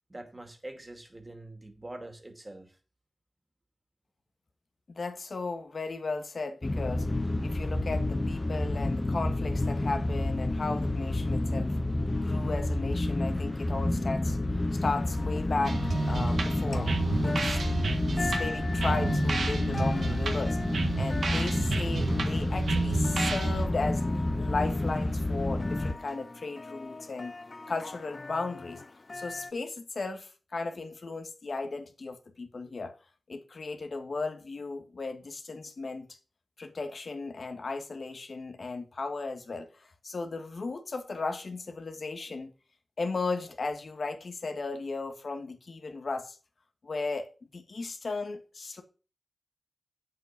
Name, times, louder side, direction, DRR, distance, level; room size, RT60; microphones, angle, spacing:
voice 1, 0.1-2.8, right 1 dB, 25° right, 2.4 m, -44 dB
voice 2, 4.9-7.1 7.4-11.7 12.1-16.9 17.2-20.6 20.9-24.0 24.3-27.3 27.7-28.8 29.1-32.9 33.3-36.1 36.6-42.5 43.0-46.4 46.8-48.8, left 3 dB, 65° left, 1.7 m, -35 dB
sound 1, 6.6-25.9, left 1 dB, 25° left, 1.1 m, -29 dB
sound 2, 14.9-29.5, left 3 dB, 45° left, 0.7 m, -42 dB
sound 3, 15.6-23.7, right 3 dB, 90° right, 1.5 m, -31 dB
8.4 x 7.7 x 5.8 m
wide cardioid pair, 65°, 0 cm